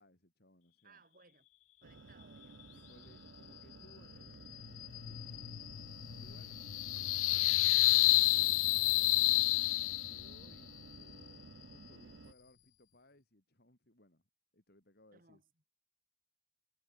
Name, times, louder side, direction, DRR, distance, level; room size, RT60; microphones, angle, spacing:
voice 1, 0.0-1.0 2.7-5.7 6.1-6.6 6.9-14.2 14.5-15.4, left 1 dB, 50° left, 3.5 m, -64 dB
voice 2, 0.8-1.5 1.8-2.7 15.1-15.5, right 4 dB, 40° right, 7.4 m, -64 dB
sound 1, 1.8-12.3, right 4 dB, 60° right, 0.6 m, -54 dB
sound 2, 4.5-10.4, left 19 dB, 70° left, 0.4 m, -30 dB
head